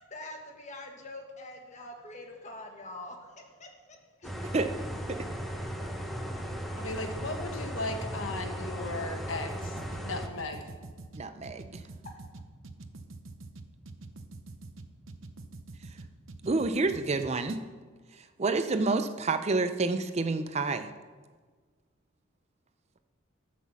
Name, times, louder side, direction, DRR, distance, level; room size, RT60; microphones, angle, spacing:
voice 1, 0.1-4.3 12.0-12.4, left 2 dB, 35° left, 2 dB, 1.5 m, -45 dB
sound 1, 4.2-10.3, equal, ahead, 0.8 m, -36 dB
voice 2, 6.7-9.8 10.0-10.7, left 2 dB, 75° left, 5 dB, 1.4 m, -36 dB
sound 2, 9.5-17.6, right 2 dB, 70° right, 0.8 m, -45 dB
voice 3, 11.2-11.8 16.5-17.6 18.4-20.9, right 3 dB, 30° right, 9 dB, 0.5 m, -28 dB
12.5 x 6.2 x 7.2 m, 1.5 s
head